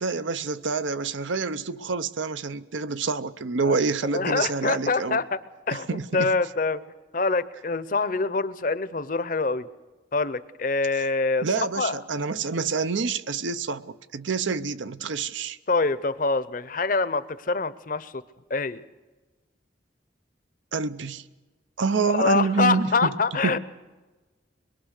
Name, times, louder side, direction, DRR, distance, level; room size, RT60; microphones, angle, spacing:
voice 1, 0.0-5.2 5.9-6.3 11.4-15.6 20.7-21.2 21.8-23.1 23.4-23.6, right 4 dB, 85° right, 0.7 m, -27 dB
voice 2, 4.1-5.4 5.7-6.8 7.1-9.7 10.1-12.0 15.7-18.2 18.5-18.8 22.1-23.6, left 3 dB, 45° left, 0.7 m, -25 dB
23.0 x 21.5 x 6.5 m
head